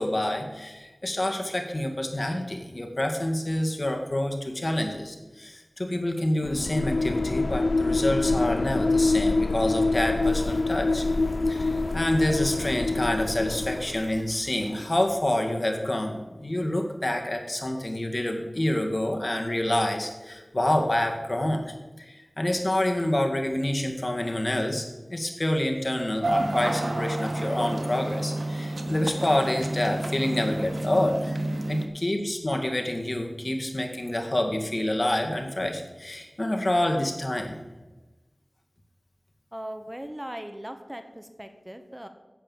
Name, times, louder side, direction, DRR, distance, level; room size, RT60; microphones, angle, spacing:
voice 1, 0.0-11.0 11.5-24.9 25.1-31.4 31.7-37.6, left 1 dB, 45° left, 3 dB, 1.9 m, -27 dB
sound 1, 6.4-14.2, left 3 dB, 90° left, 0.3 m, -25 dB
sound 2, 10.2-15.2, right 1 dB, 50° right, 3.4 m, -47 dB
sound 3, 26.2-31.9, right 1 dB, 80° right, 1.2 m, -29 dB
voice 2, 31.5-31.9 39.5-42.1, equal, 15° right, 7 dB, 1.1 m, -39 dB
10.0 x 8.2 x 7.1 m, 1.1 s
wide cardioid pair, 50°, 0 cm